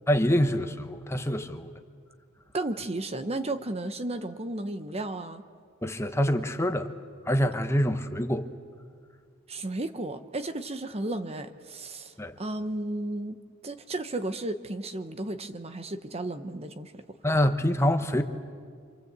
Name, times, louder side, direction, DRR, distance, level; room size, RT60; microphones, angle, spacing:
voice 1, 0.1-1.7 5.8-6.9 7.3-8.5 12.2-12.3 17.2-18.2, equal, 10° left, 7 dB, 1.0 m, -25 dB
voice 2, 2.5-5.4 9.5-17.0, right 2 dB, 30° right, 10 dB, 0.9 m, -34 dB
27.0 x 26.5 x 8.2 m, 2.1 s
head